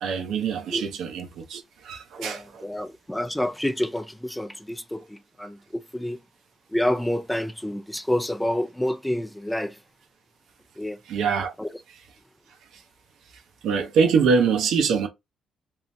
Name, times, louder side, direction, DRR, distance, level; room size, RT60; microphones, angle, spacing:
voice 1, 0.0-2.6 11.1-11.5 13.6-15.1, right 5 dB, 80° right, 0.9 m, -24 dB
voice 2, 2.2-6.2 6.7-9.7 10.8-11.0 11.6-11.7, left 1 dB, 5° left, 0.5 m, -28 dB
3.7 x 3.1 x 2.7 m
cardioid pair, 90°, 0 cm